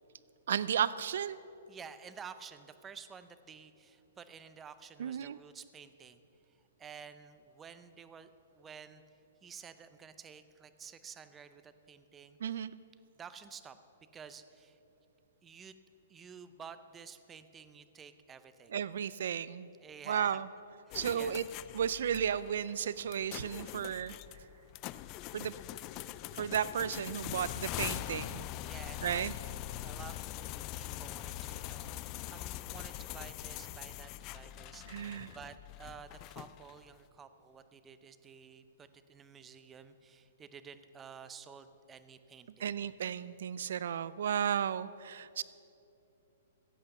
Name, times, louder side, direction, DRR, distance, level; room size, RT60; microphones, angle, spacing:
voice 1, 0.5-1.4 5.0-5.4 12.4-12.8 18.7-19.7 20.1-20.5 20.9-21.4 21.7-24.2 25.3-25.5 26.4-28.5 29.0-29.3 34.9-35.3 42.6-45.4, right 8 dB, 70° right, 17 dB, 0.3 m, -34 dB
voice 2, 1.7-6.2 6.8-8.3 8.5-9.0 9.4-12.6 13.2-13.8 14.1-14.8 15.4-15.7 16.1-18.7 19.8-20.4 20.9-21.3 28.6-29.3 29.8-30.5 30.8-42.7, right 6 dB, 15° right, 11 dB, 0.6 m, -51 dB
sound 1, 20.9-36.9, left 15 dB, 30° left, 0.3 m, -43 dB
16.0 x 8.2 x 6.6 m, 2.9 s
hypercardioid pair, 150°, 0 cm